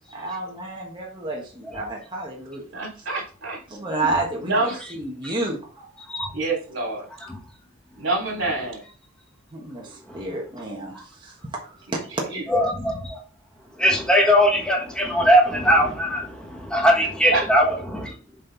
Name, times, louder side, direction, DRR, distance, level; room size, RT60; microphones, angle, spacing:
voice 1, 0.1-2.7 3.0-3.1 3.7-5.7 9.5-12.5, right 2 dB, 25° right, -2 dB, 1.5 m, -31 dB
voice 2, 2.7-3.6 4.4-4.8 6.3-7.1 8.0-8.8 12.3-12.4 17.3-17.4, right 2 dB, 75° right, -1 dB, 3.1 m, -26 dB
voice 3, 12.5-13.2 13.8-18.1, equal, 5° left, 0 dB, 1.4 m, -20 dB
7.6 x 4.3 x 4.0 m, 0.38 s
head